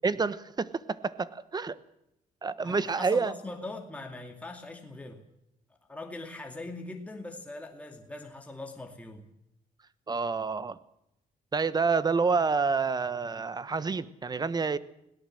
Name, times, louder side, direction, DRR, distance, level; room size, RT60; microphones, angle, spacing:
voice 1, 0.0-1.8 2.4-3.3 10.1-10.8 11.5-14.8, right 4 dB, 25° right, 16 dB, 1.1 m, -28 dB
voice 2, 2.6-5.2 5.9-9.2, left 2 dB, 10° left, 2 dB, 2.5 m, -41 dB
22.0 x 17.5 x 7.7 m, 0.83 s
cardioid pair, 100°, 15 cm